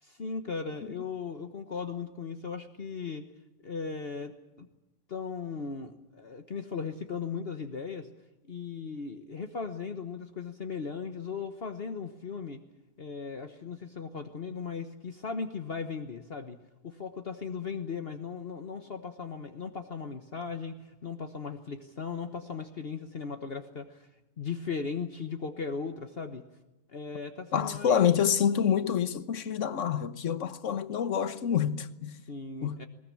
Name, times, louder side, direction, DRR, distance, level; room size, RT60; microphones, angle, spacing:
voice 1, 0.0-3.3 3.6-4.7 5.1-8.1 8.5-12.6 13.0-16.6 16.8-24.1 24.4-26.4 26.9-28.1 32.3-32.9, left 5 dB, 50° left, 1.4 m, -37 dB
voice 2, 27.5-32.2 32.6-32.9, left 8 dB, 70° left, 1.4 m, -27 dB
20.5 x 20.0 x 8.7 m
omnidirectional pair, 1.4 m